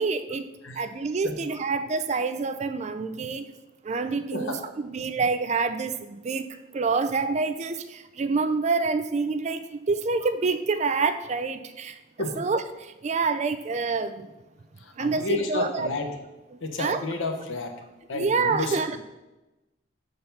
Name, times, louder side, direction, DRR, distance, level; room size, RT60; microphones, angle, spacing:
voice 1, 0.0-0.5 0.8-3.5 3.8-6.5 6.7-12.0 12.4-14.3 15.0-15.9 16.8-17.0 18.1-19.0, right 4 dB, 35° right, 11 dB, 0.4 m, -27 dB
voice 2, 14.8-16.1 16.6-17.7 18.1-19.0, left 2 dB, 80° left, 4 dB, 1.0 m, -31 dB
6.7 x 4.0 x 5.7 m, 1.0 s
head